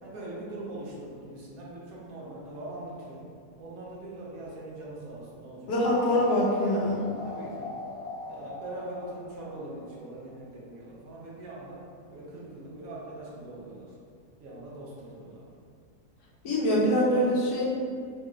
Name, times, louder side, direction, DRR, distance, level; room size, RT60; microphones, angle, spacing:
voice 1, 0.0-3.2 3.6-5.9 6.7-7.7 8.3-11.8 12.1-13.9 14.4-15.4 16.7-17.3, right 2 dB, 65° right, -5 dB, 1.3 m, -42 dB
voice 2, 5.7-7.0 16.4-17.7, equal, 80° left, -5 dB, 1.4 m, -24 dB
sound 1, 5.8-10.3, left 3 dB, 55° left, 0.4 m, -40 dB
5.0 x 2.8 x 2.5 m, 2.2 s
omnidirectional pair, 1.7 m